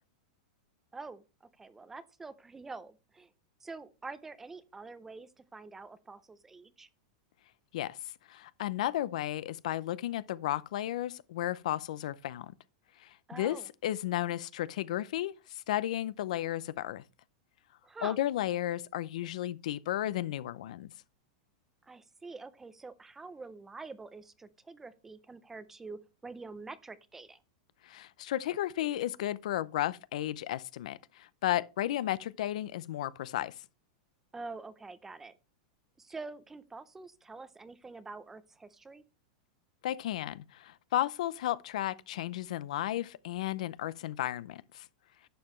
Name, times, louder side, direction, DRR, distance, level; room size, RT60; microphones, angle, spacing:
voice 1, 0.9-3.3 3.6-6.9 13.3-13.7 17.8-18.2 21.8-27.4 34.3-35.3 36.0-39.0, right 3 dB, 10° right, 0.5 m, -46 dB
voice 2, 8.3-12.5 13.0-13.6 13.8-17.0 18.0-20.9 27.8-33.5 39.8-44.9, left 13 dB, 70° left, 0.6 m, -33 dB
11.5 x 7.6 x 3.1 m
supercardioid pair, 165°, 4 cm